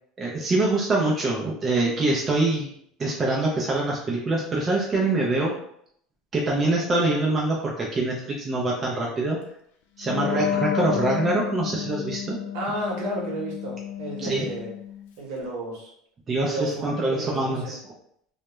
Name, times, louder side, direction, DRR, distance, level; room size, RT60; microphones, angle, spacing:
voice 1, 0.2-2.7 3.0-5.5 6.3-9.4 10.0-12.4 14.2-14.5 16.3-17.8, right 2 dB, 20° right, -3 dB, 0.4 m, -24 dB
Wind instrument woodwind instrument, 10.0-15.1, left 9 dB, 90° left, 0.4 m, -31 dB
voice 2, 10.1-10.4 12.5-14.7 15.2-15.9 16.3-17.7, right 1 dB, 65° right, -2 dB, 0.9 m, -32 dB
2.2 x 2.1 x 3.0 m, 0.68 s
cardioid pair, 145°, 0 cm